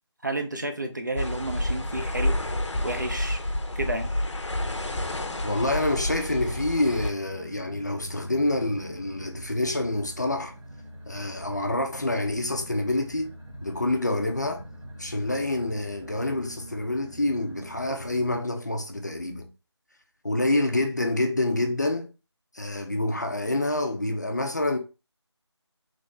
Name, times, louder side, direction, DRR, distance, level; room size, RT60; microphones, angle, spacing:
voice 1, 0.2-2.4 2.8-3.4 3.8-4.1, right 2 dB, 40° right, 0.5 m, -31 dB
sound 1, 1.2-7.1, left 1 dB, 85° left, 0.7 m, -29 dB
sound 2, 4.5-18.4, equal, 85° right, 1.3 m, -44 dB
voice 2, 5.4-10.6 11.1-13.3 13.6-14.6 15.0-19.5 20.2-22.1 22.5-24.8, left 2 dB, 40° left, 0.5 m, -27 dB
3.3 x 2.7 x 3.1 m
figure-of-eight pair, 170°, 15 cm